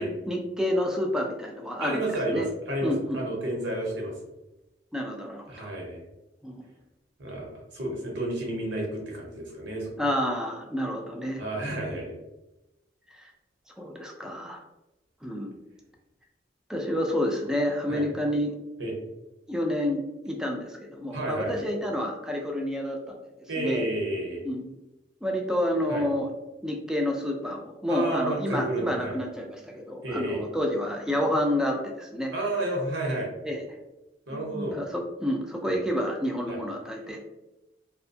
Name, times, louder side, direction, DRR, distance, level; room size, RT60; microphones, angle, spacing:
voice 1, 0.0-2.5 2.8-3.3 4.9-5.7 6.4-6.5 10.0-11.7 13.1-13.3 13.8-14.6 15.2-15.5 16.7-18.5 19.5-23.1 23.6-23.8 24.5-24.8 25.2-26.3 26.6-32.3 33.4-33.6 34.3-37.2, left 1 dB, 5° right, 1 dB, 0.3 m, -29 dB
voice 2, 1.8-4.1 5.5-6.0 7.2-9.9 11.4-12.2 17.9-18.0 18.8-18.9 21.1-21.7 23.5-24.5 25.9-26.1 27.9-29.1 30.0-30.4 32.3-33.3 34.3-34.8 35.7-35.8 36.5-36.6, right 1 dB, 85° right, -1 dB, 0.9 m, -31 dB
2.6 x 2.1 x 2.6 m, 0.97 s
head